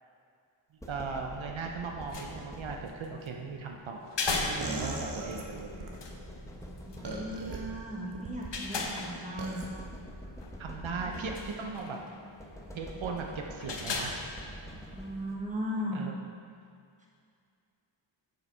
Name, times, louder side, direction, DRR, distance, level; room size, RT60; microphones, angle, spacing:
sound 1, 0.8-3.3 4.6-8.2 9.6-11.8 12.4-15.5, equal, 5° left, 0.8 m, -46 dB
voice 1, 0.9-5.8 7.1-7.3 10.6-12.0 12.7-14.1 15.9-16.2, right 5 dB, 75° right, 2 dB, 0.7 m, -38 dB
sound 2, 1.9-15.3, left 3 dB, 60° left, 0.9 m, -40 dB
sound 3, 4.6-6.0 7.0-7.6 8.1-8.5 9.4-9.7, right 3 dB, 55° right, 1.0 m, -37 dB
voice 2, 6.7-9.6 10.7-11.9 14.9-16.0, equal, 15° right, -3 dB, 1.4 m, -38 dB
7.1 x 6.5 x 4.4 m, 2.3 s
wide cardioid pair, 85°, 48 cm